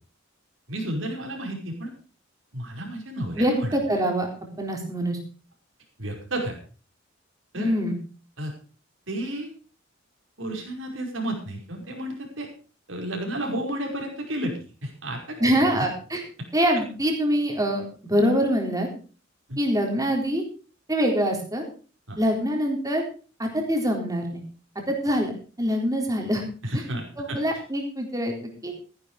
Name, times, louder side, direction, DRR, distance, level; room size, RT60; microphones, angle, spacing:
voice 1, 0.7-1.9 2.5-3.7 6.0-6.6 7.5-7.8 8.4-8.5 9.1-9.5 10.4-12.5 12.9-14.5 14.8-15.7 19.5-19.6 22.1-22.2 26.6-27.4, right 1 dB, 75° right, 1 dB, 5.3 m, -31 dB
voice 2, 3.4-4.3 4.6-5.2 7.5-8.0 15.4-16.2 16.5-18.9 19.6-20.4 20.9-21.6 22.2-23.0 23.4-24.4 24.9-25.3 25.6-26.4 26.7-26.8 27.2-28.4 28.6-28.7, equal, 20° right, 2 dB, 4.0 m, -24 dB
15.0 x 10.5 x 5.0 m, 0.37 s
head